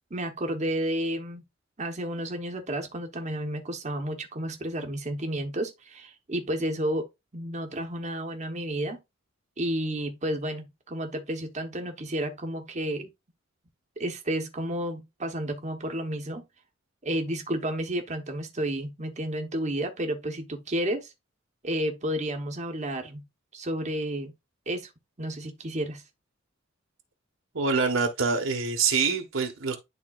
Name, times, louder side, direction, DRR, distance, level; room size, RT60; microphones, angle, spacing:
voice 1, 0.1-1.4 1.8-7.1 7.3-9.0 9.6-13.1 14.0-16.4 17.0-21.1 21.6-23.2 23.5-24.3 24.7-24.9 25.2-26.0, right 1 dB, 35° right, 1.0 m, -31 dB
voice 2, 27.5-29.8, right 5 dB, 80° right, 1.4 m, -25 dB
11.0 x 3.7 x 2.4 m
head